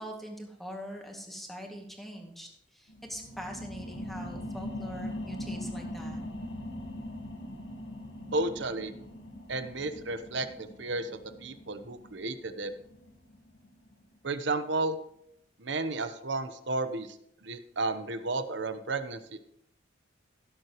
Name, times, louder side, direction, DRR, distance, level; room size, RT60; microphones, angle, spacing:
voice 1, 0.0-6.2, equal, ahead, 0 dB, 2.1 m, -43 dB
sound 1, 2.9-14.0 14.5-14.6, left 1 dB, 70° left, 1.4 m, -41 dB
voice 2, 8.3-8.9 9.5-11.1 11.4-12.7 14.2-15.0 15.6-17.2 17.4-19.4, right 2 dB, 70° right, 10 dB, 1.0 m, -32 dB
17.0 x 7.9 x 3.1 m, 0.73 s
head